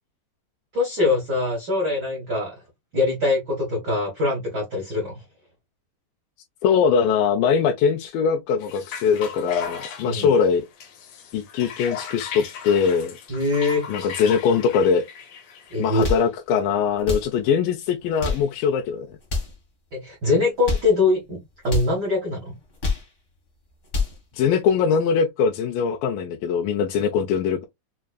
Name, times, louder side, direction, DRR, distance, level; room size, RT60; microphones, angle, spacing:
voice 1, 0.7-2.5 2.9-5.2 10.0-10.3 13.3-13.9 15.7-16.1 19.9-22.5, left 3 dB, 80° right, 0.9 m, -23 dB
voice 2, 6.6-10.6 11.3-13.2 13.9-15.1 15.8-19.1 24.3-27.6, left 6 dB, 90° left, 2.3 m, -21 dB
sound 1, 8.6-16.0, left 7 dB, 70° left, 1.7 m, -36 dB
sound 2, 15.8-16.3 17.0-17.3 18.0-18.5 19.2-19.6 20.4-20.9 21.6-21.9 22.6-23.1 23.7-24.2, left 3 dB, 50° left, 0.8 m, -27 dB
5.5 x 2.4 x 2.2 m
omnidirectional pair, 3.9 m